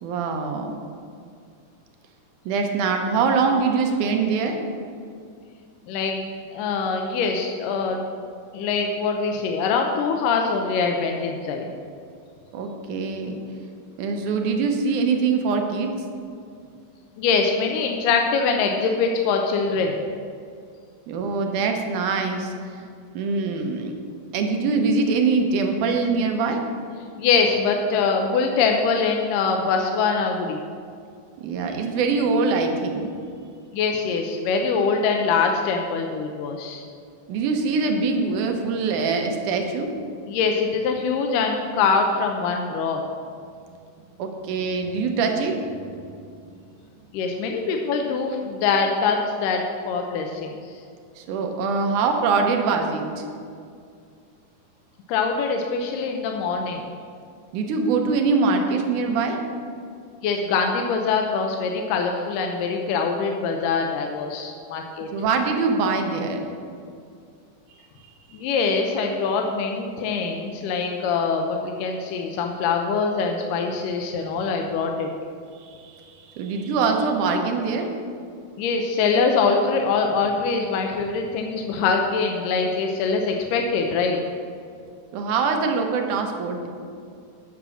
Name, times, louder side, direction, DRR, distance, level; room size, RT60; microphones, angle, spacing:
voice 1, 0.0-0.8 2.5-4.6 12.5-13.4 14.0-15.9 21.1-22.9 23.1-23.9 24.3-26.6 31.4-33.1 37.3-39.9 44.2-46.3 51.2-53.2 57.5-59.4 65.1-66.4 75.5-77.9 85.1-86.7, right 4 dB, 75° right, 4 dB, 2.3 m, -23 dB
voice 2, 5.9-6.2 6.5-8.0 8.5-11.7 17.2-20.0 27.2-30.6 33.7-36.8 40.3-43.0 47.1-50.8 55.1-56.8 60.2-65.1 68.3-75.1 78.6-84.2, left 5 dB, 85° left, 3 dB, 2.3 m, -23 dB
8.8 x 6.1 x 6.2 m, 2.3 s
omnidirectional pair, 3.7 m